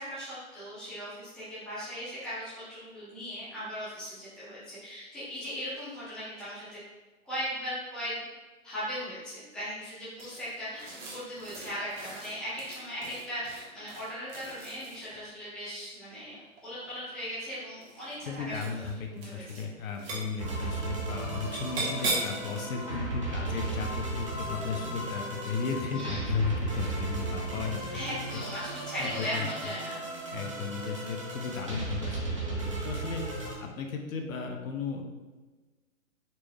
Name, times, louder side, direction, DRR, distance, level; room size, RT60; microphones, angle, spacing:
voice 1, 0.0-6.8 7.2-8.2 8.6-16.4 16.6-18.6 19.2-19.7 25.9-26.3 27.9-30.0, equal, ahead, -12 dB, 0.7 m, -38 dB
sound 1, 10.2-15.2 16.4-17.1 17.8-18.2 18.5-18.9 19.2-19.6 19.9-20.5 21.5-22.4, right 2 dB, 50° right, 1.1 m, -38 dB
voice 2, 18.2-27.8 28.3-28.4 29.0-29.5 30.3-35.0, left 5 dB, 75° left, 3 dB, 0.7 m, -35 dB
sound 2, 20.4-33.5, right 2 dB, 25° right, 0.3 m, -35 dB
4.2 x 3.2 x 2.3 m, 1.2 s
hypercardioid pair, 150°, 41 cm